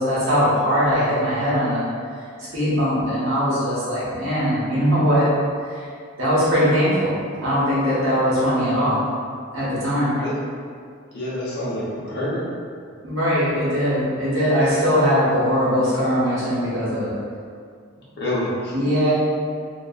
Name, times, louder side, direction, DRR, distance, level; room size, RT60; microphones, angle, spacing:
voice 1, 0.0-1.9 2.5-5.3 5.7-5.8 6.2-7.1 7.4-9.0 9.5-10.2 13.0-17.1 18.7-19.1, equal, 70° right, -10 dB, 1.1 m, -20 dB
voice 2, 11.1-12.4 18.2-18.7, left 1 dB, 55° left, -7 dB, 0.7 m, -27 dB
2.6 x 2.4 x 2.4 m, 2.2 s
head